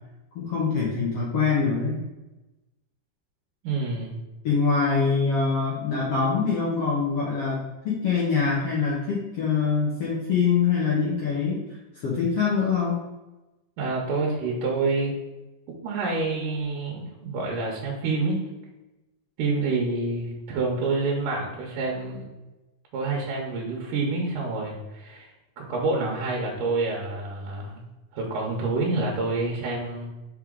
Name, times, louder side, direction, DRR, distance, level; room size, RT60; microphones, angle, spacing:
voice 1, 0.3-2.0 4.4-7.6 7.8-11.6 12.0-13.0, left 5 dB, 65° left, -6 dB, 1.5 m, -24 dB
voice 2, 3.6-4.2 13.8-15.2 15.8-18.4 19.4-22.3 22.9-25.3 25.6-27.9 28.1-30.1, right 3 dB, 75° right, -1 dB, 2.4 m, -27 dB
5.5 x 4.7 x 3.7 m, 1.0 s
omnidirectional pair, 4.1 m